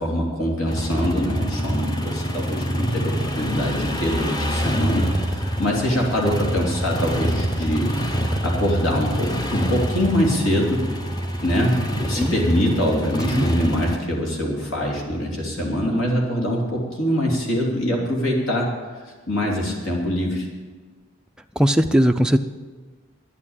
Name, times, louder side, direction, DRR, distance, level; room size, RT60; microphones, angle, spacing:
voice 1, 0.0-7.9 8.4-10.8 11.4-18.7 19.3-20.5, equal, 75° left, -1 dB, 3.1 m, -23 dB
sound 1, 0.7-14.0, equal, 20° left, 0.9 m, -26 dB
voice 2, 21.6-22.4, equal, 5° right, 5 dB, 0.3 m, -18 dB
11.0 x 8.7 x 8.9 m, 1.4 s
head